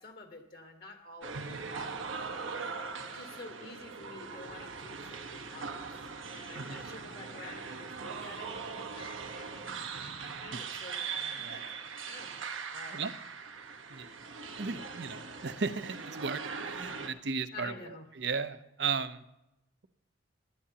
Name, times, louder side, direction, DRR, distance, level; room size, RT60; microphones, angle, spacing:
voice 1, 0.0-1.9 3.0-13.0 17.5-18.1, left 3 dB, 50° left, 4 dB, 1.5 m, -50 dB
sound 1, 1.2-17.1, right 5 dB, 90° right, 1.2 m, -41 dB
voice 2, 6.5-6.9 10.5-10.6 11.3-11.7 12.9-13.1 13.9-14.1 14.6-19.2, right 5 dB, 60° right, 11 dB, 0.7 m, -36 dB
17.5 x 11.0 x 2.9 m, 0.87 s
head